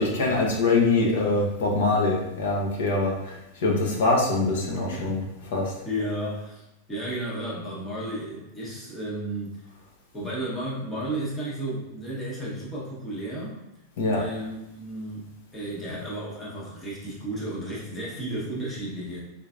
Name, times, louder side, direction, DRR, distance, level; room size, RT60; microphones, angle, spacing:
voice 1, 0.0-5.2 5.5-5.7 14.0-14.2, left 3 dB, 70° left, 0 dB, 0.8 m, -24 dB
voice 2, 5.8-9.6 10.1-13.6 14.1-19.2, right 1 dB, 10° left, -6 dB, 0.9 m, -33 dB
3.8 x 3.3 x 2.4 m, 0.91 s
supercardioid pair, 170°, 0 cm